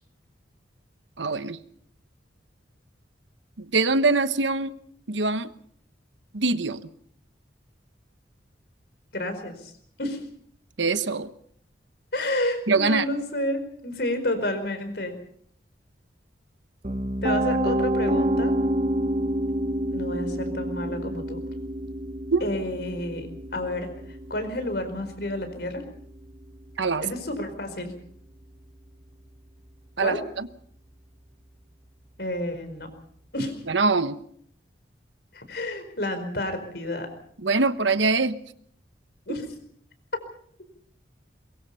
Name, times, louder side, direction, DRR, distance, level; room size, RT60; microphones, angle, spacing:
voice 1, 1.2-1.6 3.6-4.7 5.1-5.5 6.3-6.9 10.8-11.3 12.7-13.0 22.3-22.5 26.8-27.0 30.0-30.5 33.7-34.2 37.4-38.4, right 3 dB, 85° right, 12 dB, 1.1 m, -23 dB
voice 2, 9.1-9.7 10.0-10.2 12.1-15.2 17.2-18.5 19.9-21.4 22.4-23.3 23.5-23.9 24.3-25.8 27.0-27.9 30.0-30.2 32.2-32.9 33.3-33.5 35.3-37.1 39.3-39.5, left 1 dB, 60° left, 9 dB, 4.8 m, -30 dB
Piano, 16.8-28.8, right 1 dB, 35° right, 1.4 m, -29 dB
23.0 x 22.5 x 5.6 m, 0.63 s
head